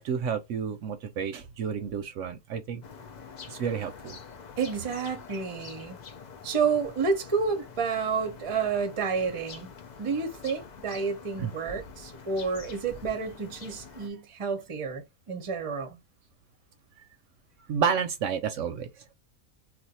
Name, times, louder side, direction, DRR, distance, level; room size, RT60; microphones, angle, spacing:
voice 1, 0.0-2.8 3.5-4.2 11.4-11.5 17.7-18.9, right 7 dB, 70° right, 0.8 m, -30 dB
sound 1, 2.8-14.1, left 5 dB, 75° left, 0.4 m, -46 dB
voice 2, 4.6-6.0 6.4-9.7 10.0-16.0, right 5 dB, 30° right, 0.6 m, -30 dB
2.5 x 2.4 x 4.1 m
omnidirectional pair, 1.5 m